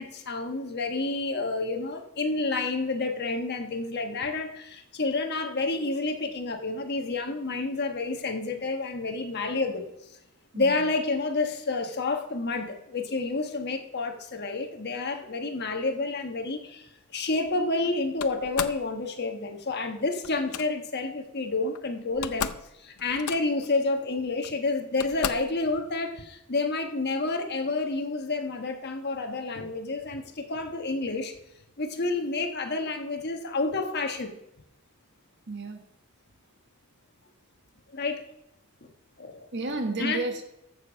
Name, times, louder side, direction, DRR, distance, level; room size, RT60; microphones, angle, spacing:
voice 1, 0.0-9.9 10.6-16.9 17.1-22.5 22.8-31.3 31.8-34.3 37.9-38.2 39.2-39.5 40.0-40.2, left 3 dB, 50° left, 5 dB, 1.3 m, -29 dB
voice 2, 10.5-10.8 35.5-35.8 39.5-40.4, right 2 dB, 55° right, 6 dB, 1.4 m, -31 dB
Slam, 18.2-18.9 20.2-20.7 21.7-21.8 22.1-22.7 23.0-23.7 24.4-24.5 25.0-25.6, left 8 dB, 80° left, 0.6 m, -34 dB
14.5 x 6.8 x 5.2 m, 0.85 s
head